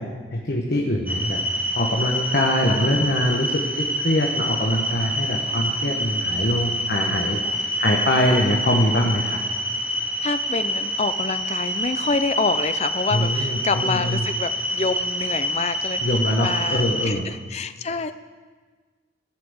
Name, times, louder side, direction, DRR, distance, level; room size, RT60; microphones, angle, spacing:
voice 1, 0.0-1.4 1.7-9.4 13.1-14.2 16.0-17.2, left 1 dB, 55° left, 0 dB, 1.1 m, -23 dB
sound 1, 1.1-17.1, equal, 10° right, 1.2 m, -26 dB
voice 2, 7.0-7.7 10.2-16.0 16.4-18.1, left 4 dB, 35° left, 11 dB, 0.5 m, -27 dB
15.0 x 5.8 x 7.8 m, 1.5 s
head